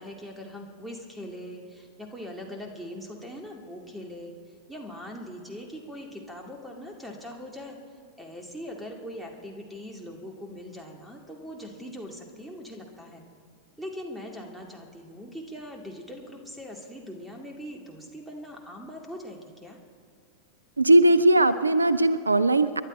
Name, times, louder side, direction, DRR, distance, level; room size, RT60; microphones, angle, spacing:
voice 1, 0.0-4.3 4.7-7.8 8.2-13.2 13.8-19.8, equal, 5° right, 2 dB, 2.3 m, -41 dB
voice 2, 20.8-22.8, right 1 dB, 80° right, 15 dB, 0.4 m, -19 dB
29.0 x 11.0 x 4.4 m, 2.1 s
figure-of-eight pair, 90°, 0 cm